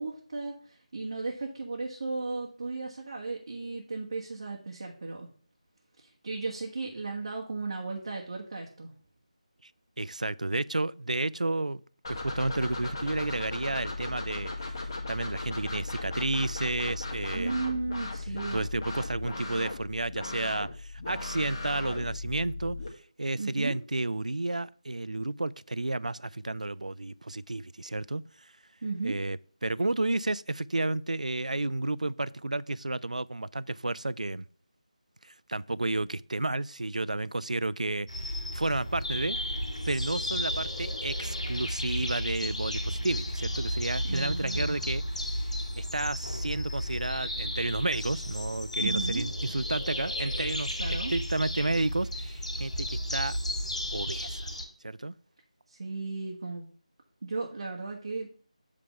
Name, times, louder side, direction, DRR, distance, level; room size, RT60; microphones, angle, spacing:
voice 1, 0.0-5.3 6.0-8.9 17.3-18.6 23.3-23.7 28.8-29.2 44.0-44.8 48.8-49.3 50.8-51.1 55.7-56.7 57.2-58.3, right 3 dB, 45° right, 1.4 m, -35 dB
voice 2, 10.0-11.8 12.1-14.5 15.1-17.6 18.5-22.8 23.2-28.5 29.0-34.4 35.2-38.1 38.5-39.4 39.9-45.0 45.8-50.8 51.1-53.4 53.9-54.5 54.8-55.1, right 2 dB, 80° right, 0.3 m, -31 dB
sound 1, 12.0-22.9, left 3 dB, 40° left, 1.8 m, -37 dB
sound 2, 38.1-54.6, equal, 65° left, 2.6 m, -33 dB
8.2 x 3.4 x 5.5 m
figure-of-eight pair, 160°, 4 cm